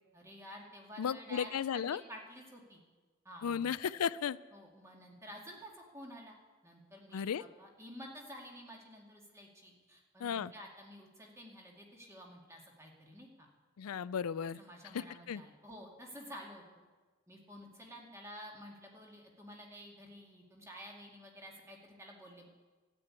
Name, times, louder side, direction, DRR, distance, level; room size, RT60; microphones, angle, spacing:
voice 1, 0.1-2.8 3.2-3.7 4.5-6.4 6.6-13.5 14.6-16.8 17.3-22.5, equal, 10° right, 0 dB, 2.1 m, -51 dB
voice 2, 1.0-2.0 3.4-4.4 7.1-7.4 10.2-10.5 13.8-14.6 14.9-15.4, left 7 dB, 80° left, 17 dB, 0.4 m, -35 dB
12.5 x 8.5 x 9.7 m, 1.4 s
head